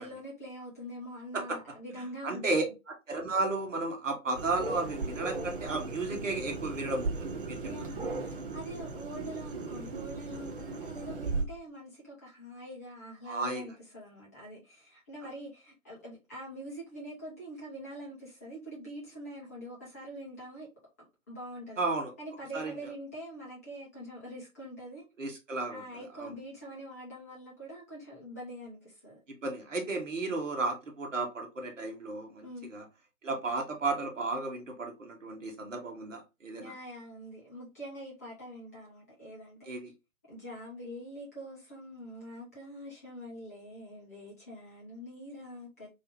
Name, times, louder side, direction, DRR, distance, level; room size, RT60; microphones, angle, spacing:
voice 1, 0.0-2.7 7.6-20.7 21.3-21.8 22.2-25.0 25.7-29.2 32.4-32.7 36.6-39.7 40.3-45.9, equal, 10° left, 0.6 m, -44 dB
voice 2, 2.2-2.6 3.1-7.6 13.3-13.6 21.8-22.1 22.5-22.7 25.2-25.8 26.2-26.3 29.3-32.8 33.2-36.7 39.7-39.9, right 3 dB, 60° right, 1.1 m, -33 dB
sound 1, 4.3-11.4, right 3 dB, 40° right, 0.6 m, -37 dB
3.3 x 2.7 x 2.9 m
figure-of-eight pair, 135°, 42 cm